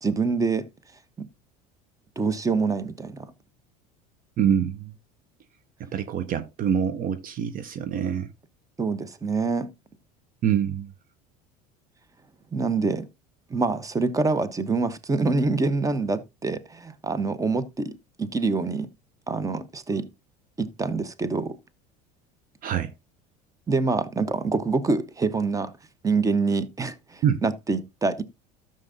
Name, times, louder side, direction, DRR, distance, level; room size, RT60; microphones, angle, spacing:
voice 1, 0.0-0.7 1.2-1.3 2.2-3.3 8.8-9.7 12.5-13.1 13.5-18.9 19.3-20.1 20.6-21.6 23.7-25.7 26.0-28.2, right 4 dB, 15° right, 0.9 m, -26 dB
voice 2, 4.4-4.9 5.8-8.3 10.4-10.9 22.6-22.9 27.2-27.4, right 8 dB, 45° right, 0.7 m, -25 dB
13.0 x 6.6 x 2.6 m
supercardioid pair, 100°, 20 cm